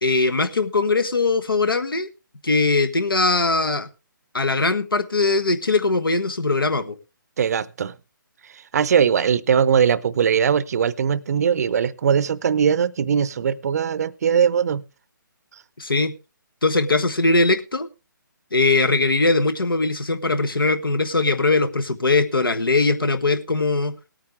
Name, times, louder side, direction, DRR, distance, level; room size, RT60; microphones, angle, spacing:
voice 1, 0.0-2.1 2.4-3.9 4.3-7.0 15.8-16.1 16.6-17.9 18.5-23.9, left 3 dB, 90° left, 10 dB, 1.4 m, -20 dB
voice 2, 7.4-8.0 8.4-14.8, right 7 dB, 50° right, 19 dB, 0.6 m, -20 dB
18.5 x 8.9 x 3.4 m, 0.29 s
figure-of-eight pair, 150°, 11 cm